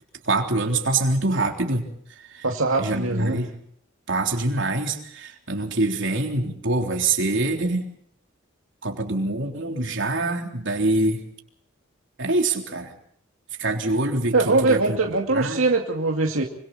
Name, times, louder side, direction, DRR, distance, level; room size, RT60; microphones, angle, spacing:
voice 1, 0.2-2.5 2.8-3.5 4.1-7.9 8.8-11.2 12.2-12.9 13.6-15.0 15.3-15.6, right 2 dB, 65° right, 2 dB, 3.6 m, -25 dB
voice 2, 2.4-3.4 14.3-16.4, right 3 dB, 90° right, 1 dB, 2.4 m, -22 dB
26.5 x 25.5 x 4.3 m, 0.64 s
head